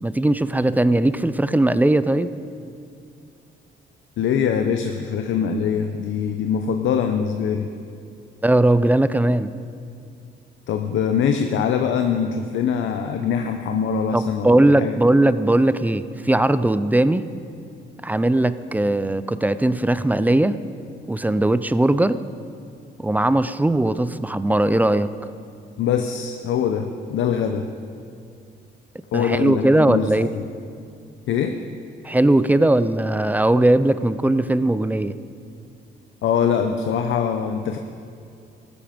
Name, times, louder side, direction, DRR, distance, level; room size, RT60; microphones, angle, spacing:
voice 1, 0.0-2.3 8.4-9.5 14.1-17.3 18.0-20.6 21.1-22.2 23.0-25.1 29.1-30.3 32.0-35.2, right 1 dB, 10° right, 14 dB, 0.5 m, -19 dB
voice 2, 4.2-7.7 10.7-15.0 25.8-27.7 29.1-30.4 31.3-31.6 36.2-37.8, left 7 dB, 75° left, 6 dB, 0.8 m, -23 dB
14.5 x 13.5 x 5.2 m, 2.5 s
cardioid pair, 90°, 20 cm